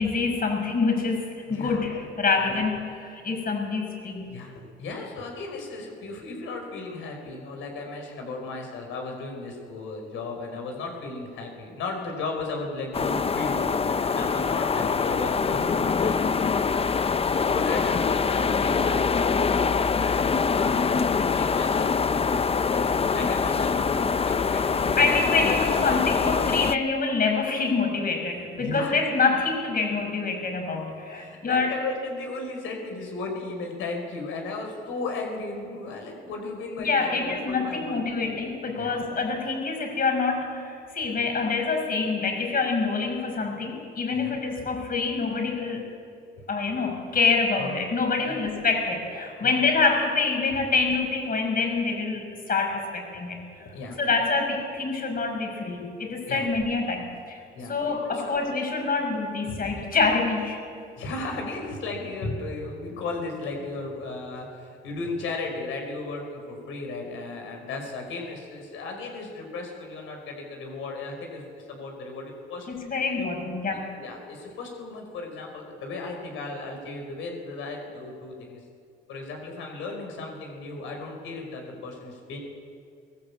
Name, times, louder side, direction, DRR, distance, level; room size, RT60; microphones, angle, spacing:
voice 1, 0.0-4.3 25.0-31.7 36.8-45.8 46.5-57.4 57.7-60.6 72.7-73.9, left 4 dB, 45° left, 3 dB, 6.0 m, -26 dB
voice 2, 1.5-1.8 2.4-2.6 4.3-16.7 17.4-25.1 25.4-25.5 28.5-29.0 31.1-38.0 38.8-39.0 44.1-44.8 45.6-45.7 46.4-46.5 47.6-47.7 48.2-48.4 49.4-49.6 53.7-54.0 56.3-56.5 57.5-58.4 59.5-59.8 61.0-72.7 73.2-73.3 74.0-78.6 79.1-82.4, left 3 dB, 90° left, 2 dB, 5.0 m, -35 dB
sound 1, 12.9-26.8, left 5 dB, 30° left, 0.7 m, -24 dB
23.5 x 18.5 x 8.5 m, 2.3 s
cardioid pair, 90°, 20 cm